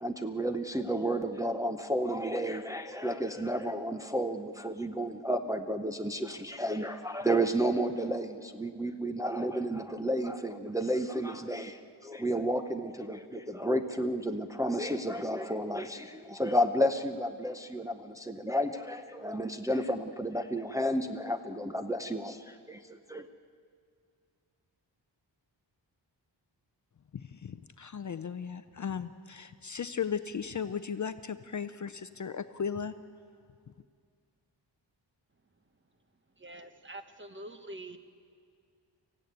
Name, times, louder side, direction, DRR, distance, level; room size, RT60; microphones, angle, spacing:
voice 1, 0.0-23.3, equal, 5° right, 5 dB, 0.7 m, -32 dB
voice 2, 27.4-32.9, left 7 dB, 40° left, 11 dB, 0.5 m, -36 dB
voice 3, 36.4-38.0, right 1 dB, 25° right, 8 dB, 1.1 m, -45 dB
25.0 x 15.0 x 9.4 m, 2.3 s
wide cardioid pair, 175°, 45 cm